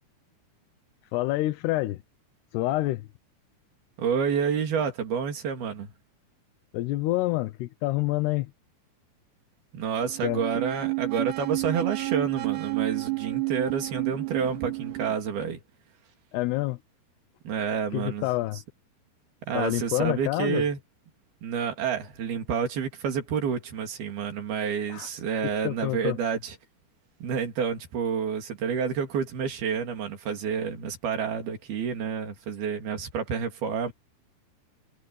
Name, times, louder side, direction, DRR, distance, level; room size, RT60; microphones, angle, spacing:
voice 1, 1.1-2.0 2.5-3.1 6.7-8.5 10.2-10.4 16.3-16.8 17.9-18.6 19.5-20.6 24.9-25.1 25.6-26.2, left 18 dB, 85° left, 2.9 m, -27 dB
voice 2, 4.0-5.9 9.7-15.6 17.4-18.3 19.4-20.8 21.4-26.6 27.2-33.9, right 7 dB, 70° right, 4.9 m, -29 dB
sound 1, 10.0-15.2, right 23 dB, 85° right, 4.0 m, -30 dB
omnidirectional pair, 4.7 m